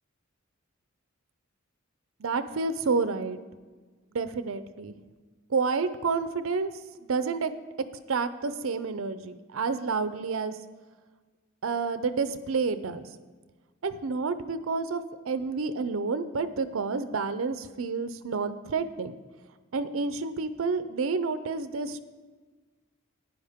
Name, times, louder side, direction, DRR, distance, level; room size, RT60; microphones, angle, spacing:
voice 1, 2.2-3.4 4.1-4.9 5.5-6.7 7.1-7.5 8.1-10.5 11.6-13.1 13.8-15.0 15.3-19.1 19.7-22.0, right 4 dB, 70° right, 12 dB, 0.6 m, -29 dB
11.0 x 9.9 x 3.6 m, 1.4 s
head